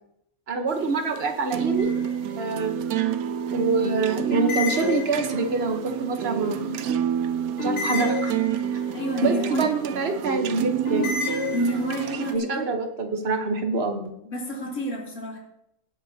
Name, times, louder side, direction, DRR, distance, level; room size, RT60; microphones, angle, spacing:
voice 1, 0.5-1.9 2.3-2.8 3.5-6.8 7.6-8.3 9.2-11.1 12.3-14.0, right 3 dB, 45° right, 5 dB, 1.3 m, -26 dB
sound 1, 0.7-12.4, right 9 dB, 80° right, 1.1 m, -28 dB
sound 2, 1.8-2.4 4.3-5.6 7.6-8.9 10.8-12.1, left 4 dB, 50° left, 4.8 m, -30 dB
voice 2, 8.9-9.6 11.5-12.7 14.2-15.4, equal, 75° left, -2 dB, 2.8 m, -29 dB
17.0 x 8.2 x 2.8 m, 0.78 s
omnidirectional pair, 1.5 m